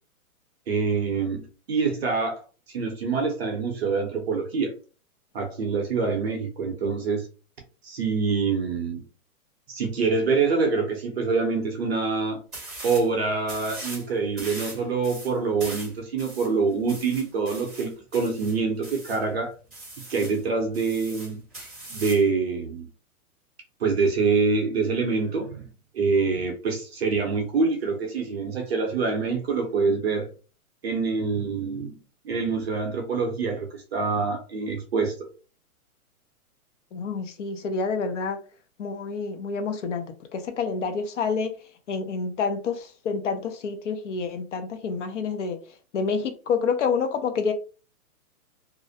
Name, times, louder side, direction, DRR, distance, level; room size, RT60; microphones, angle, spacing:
voice 1, 0.7-2.4 2.7-4.7 5.3-7.3 7.8-9.0 9.7-12.4 12.8-19.5 20.1-21.4 21.9-22.9 23.8-30.3 30.8-32.0 32.2-35.3, right 4 dB, 45° right, 0.6 m, -25 dB
sound 1, 12.5-13.1 13.4-14.1 14.4-19.2 19.7-20.4 20.7-22.3, right 2 dB, ahead, 0.6 m, -40 dB
voice 2, 36.9-38.4 38.8-40.1 40.3-41.5 41.9-45.6 45.9-47.5, left 5 dB, 55° left, 0.6 m, -28 dB
2.4 x 2.0 x 2.6 m
hypercardioid pair, 170°, 44 cm